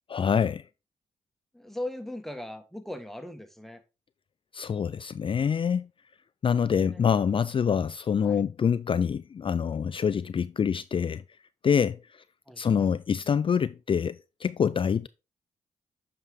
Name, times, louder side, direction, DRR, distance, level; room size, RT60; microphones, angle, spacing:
voice 1, 0.1-0.6 4.5-5.9 6.4-11.2 11.6-12.0 12.6-15.1, left 7 dB, 40° left, 0.4 m, -26 dB
voice 2, 1.5-3.8 6.6-7.3 8.2-8.4 12.5-12.9, left 1 dB, ahead, 1.5 m, -39 dB
8.1 x 4.9 x 3.6 m
supercardioid pair, 45°, 13 cm